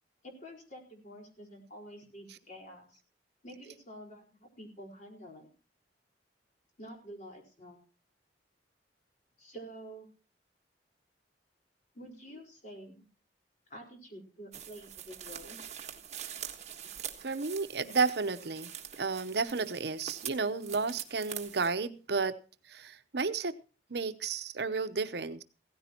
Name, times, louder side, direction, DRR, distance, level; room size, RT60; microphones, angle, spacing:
voice 1, 0.2-3.0 3.4-5.5 6.8-7.8 9.4-10.1 11.9-13.1 13.7-15.6 16.8-16.9 17.2-17.3, equal, 45° left, 1 dB, 4.4 m, -48 dB
sound 1, 14.5-21.7, right 9 dB, 40° right, 1.5 m, -44 dB
voice 2, 17.2-18.7 19.0-22.3 22.7-23.5 23.9-25.4, right 4 dB, 65° right, 11 dB, 0.8 m, -32 dB
16.5 x 14.5 x 2.9 m, 0.36 s
head